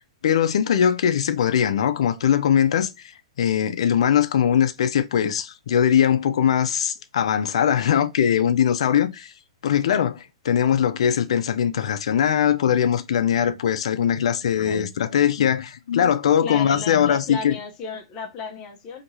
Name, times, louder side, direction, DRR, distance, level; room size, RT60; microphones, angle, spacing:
voice 1, 0.2-3.1 3.4-9.3 9.6-17.5, left 9 dB, 70° left, 0.5 m, -21 dB
voice 2, 16.4-19.0, left 4 dB, 30° left, 0.8 m, -34 dB
4.4 x 2.9 x 2.7 m
hypercardioid pair, 140°, 3 cm